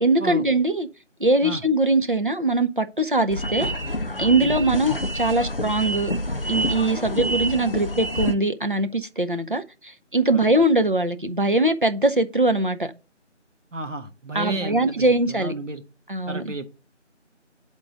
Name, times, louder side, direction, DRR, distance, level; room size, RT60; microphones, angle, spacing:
voice 1, 0.0-0.9 1.2-3.7 4.2-6.1 6.5-12.9 14.3-15.5 16.1-16.5, right 2 dB, 45° right, 0.5 m, -22 dB
sound 1, 3.3-8.3, equal, 50° left, 0.4 m, -27 dB
voice 2, 13.7-15.8 16.3-16.7, right 2 dB, 80° right, 1.1 m, -33 dB
10.0 x 3.7 x 3.8 m
figure-of-eight pair, 170°, 37 cm